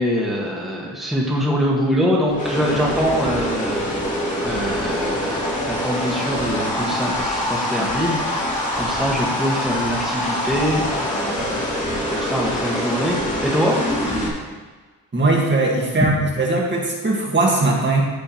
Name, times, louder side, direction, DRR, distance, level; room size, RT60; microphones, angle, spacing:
voice 1, 0.0-3.9 4.4-11.7 12.1-13.8 16.0-16.1, equal, ahead, -3 dB, 1.8 m, -23 dB
sound 1, 2.3-14.3, left 1 dB, 20° left, 3.0 m, -24 dB
voice 2, 15.1-18.0, right 2 dB, 30° right, -2 dB, 1.9 m, -19 dB
14.5 x 6.1 x 3.2 m, 1.4 s
cardioid pair, 100°, 37 cm